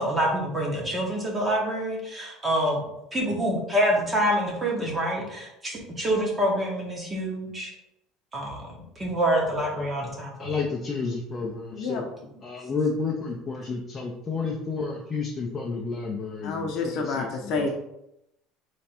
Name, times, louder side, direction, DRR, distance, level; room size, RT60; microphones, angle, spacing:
voice 1, 0.0-2.8 3.1-7.7 8.3-10.6 11.9-12.0, equal, 15° right, -1 dB, 0.9 m, -26 dB
voice 2, 10.4-12.0 12.4-17.7, left 4 dB, 20° left, 0 dB, 0.5 m, -31 dB
voice 3, 11.7-12.0 16.4-17.7, left 4 dB, 50° left, 3 dB, 0.7 m, -29 dB
3.4 x 3.1 x 4.3 m, 0.83 s
cardioid pair, 170°, 0 cm